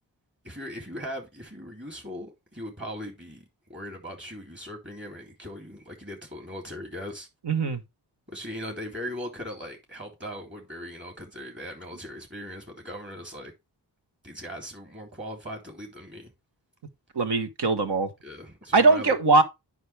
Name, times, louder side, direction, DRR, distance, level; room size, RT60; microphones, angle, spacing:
voice 1, 0.4-3.4 3.7-7.3 8.3-13.5 14.2-16.3 18.2-19.2, equal, 30° right, 3.5 m, -39 dB
voice 2, 7.5-7.8 17.1-18.1 18.7-19.4, right 3 dB, 75° right, 1.4 m, -21 dB
9.5 x 5.6 x 3.4 m
cardioid pair, 60°, 41 cm